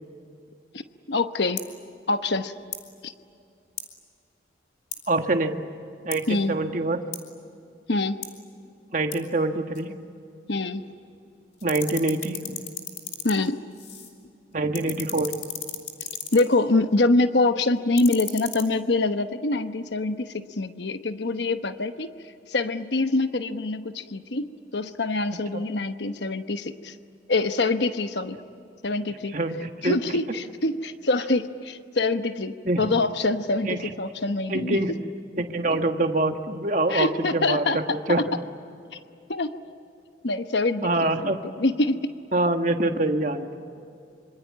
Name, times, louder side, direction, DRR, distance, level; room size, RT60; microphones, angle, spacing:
voice 1, 1.1-1.6 2.1-2.5 3.0-3.1 6.3-6.6 7.9-8.2 10.5-10.8 13.2-13.6 16.3-22.1 22.5-26.9 27.3-28.4 28.8-29.4 29.8-34.8 35.7-35.8 36.9-38.2 39.3-39.5 40.2-42.1, left 2 dB, 70° left, 9 dB, 1.0 m, -25 dB
sound 1, 1.6-1.7 2.6-2.9 3.8-3.9 4.9-5.1 6.1-6.2 7.1-7.3 8.2-8.3 9.1-9.2 9.7-9.8 10.6-11.3 11.5-14.2 14.5-16.5 17.8-18.6, left 7 dB, 40° left, 3.6 m, -37 dB
voice 2, 5.1-5.5 6.0-7.0 8.9-9.9 11.6-12.6 14.5-15.3 29.3-30.0 32.6-32.9 33.6-33.8 34.5-34.9 35.4-38.3 40.8-41.4 42.3-43.6, right 2 dB, 45° right, 5 dB, 1.6 m, -25 dB
26.0 x 25.5 x 8.7 m, 2.6 s
head